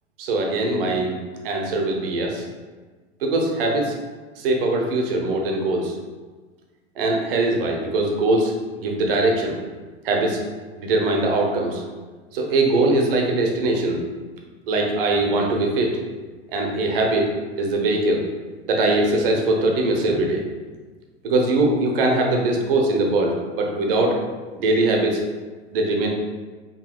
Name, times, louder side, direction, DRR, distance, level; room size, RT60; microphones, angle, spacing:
voice 1, 0.2-1.2 1.4-2.4 3.2-4.0 4.4-6.0 7.0-9.6 10.0-10.4 10.7-11.8 12.3-14.0 14.7-16.0 16.5-18.2 18.7-20.4 21.2-24.2 24.6-25.2 25.7-26.1, right 2 dB, 55° right, 1 dB, 0.8 m, -21 dB
5.2 x 2.7 x 2.3 m, 1.4 s
figure-of-eight pair, 85°, 34 cm